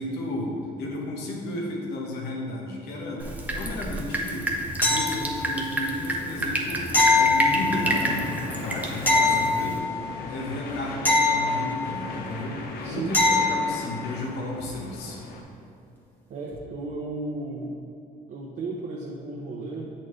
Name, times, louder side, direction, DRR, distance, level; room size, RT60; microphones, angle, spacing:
voice 1, 0.0-4.5 4.8-6.9 7.1-9.8 10.3-15.2, left 1 dB, 80° left, -1 dB, 1.1 m, -33 dB
Drip, 3.2-9.8, right 1 dB, 10° right, 0.6 m, -30 dB
sound 1, 4.8-5.6 6.9-8.0 9.1-10.1 11.0-12.1 13.1-13.8 16.5-16.6, left 3 dB, 10° left, 1.1 m, -22 dB
sound 2, 6.3-15.4, left 3 dB, 65° left, 0.7 m, -38 dB
voice 2, 16.3-17.8 18.3-19.9, right 3 dB, 50° right, -2 dB, 0.6 m, -34 dB
7.5 x 4.3 x 3.1 m, 2.7 s
cardioid pair, 110°, 17 cm